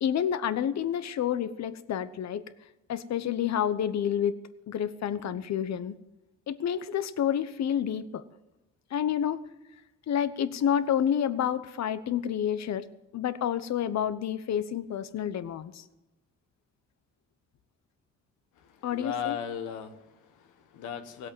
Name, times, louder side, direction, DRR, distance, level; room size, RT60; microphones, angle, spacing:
voice 1, 0.0-2.4 2.9-4.3 4.7-5.9 6.5-8.2 8.9-9.4 10.1-12.9 13.1-15.8 18.8-19.4, left 9 dB, 60° left, 13 dB, 1.0 m, -29 dB
voice 2, 18.6-21.3, left 8 dB, 85° left, 6 dB, 1.6 m, -37 dB
17.5 x 8.2 x 9.0 m, 1.0 s
cardioid pair, 90°, 30 cm